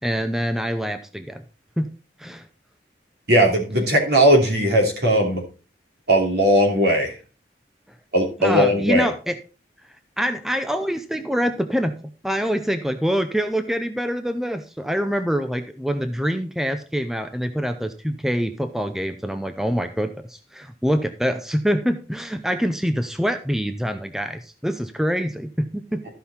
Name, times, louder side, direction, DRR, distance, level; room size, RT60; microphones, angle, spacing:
voice 1, 0.0-1.4 1.8-1.9 2.2-2.4 8.4-9.4 10.2-11.9 12.2-26.1, equal, ahead, 8 dB, 0.6 m, -25 dB
voice 2, 3.3-5.4 6.1-7.1 8.1-9.1, equal, 70° right, 1 dB, 3.0 m, -18 dB
13.5 x 5.7 x 4.2 m, 0.34 s
head